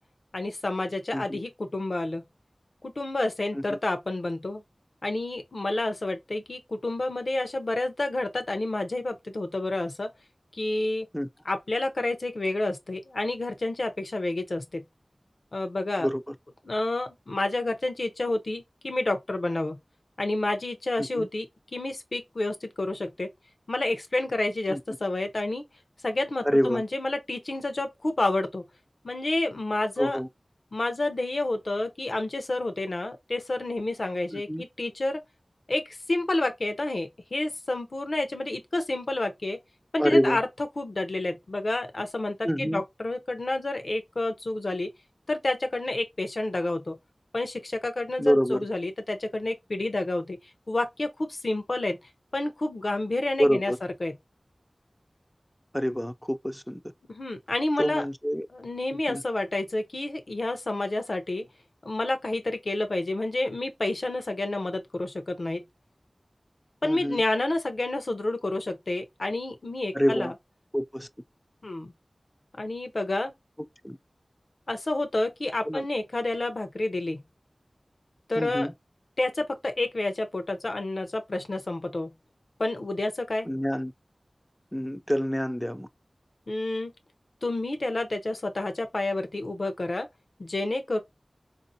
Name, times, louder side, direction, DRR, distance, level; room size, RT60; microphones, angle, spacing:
voice 1, 0.3-2.2 2.8-4.6 5.0-10.1 10.5-11.1 11.4-14.8 15.5-16.1 16.6-19.8 20.2-21.5 21.7-23.3 23.7-25.7 26.0-28.6 29.0-30.2 30.7-35.2 35.7-39.6 39.9-40.5 40.8-44.9 45.3-47.0 47.3-50.4 50.7-52.0 52.3-53.7 54.0-54.1 57.1-58.0 58.5-61.5 61.8-65.6 66.8-70.3 71.6-71.9 72.6-73.3 74.7-77.2 78.3-78.7 79.2-82.1 82.6-83.5 86.5-86.9 87.4-90.1 90.4-91.0, left 2 dB, 70° left, 0.7 m, -29 dB
voice 2, 16.0-16.3 21.0-21.3 24.7-24.8 26.4-26.8 30.0-30.3 34.3-34.6 40.0-40.4 42.4-42.8 48.2-48.6 53.4-53.8 55.7-56.8 57.8-58.5 59.1-59.2 66.8-67.2 69.9-70.3 70.7-71.1 73.8-74.0 75.6-75.8 78.4-78.7 83.4-83.9 84.7-85.9, equal, 5° left, 0.4 m, -26 dB
4.0 x 2.6 x 2.7 m
wide cardioid pair, 45°, 0 cm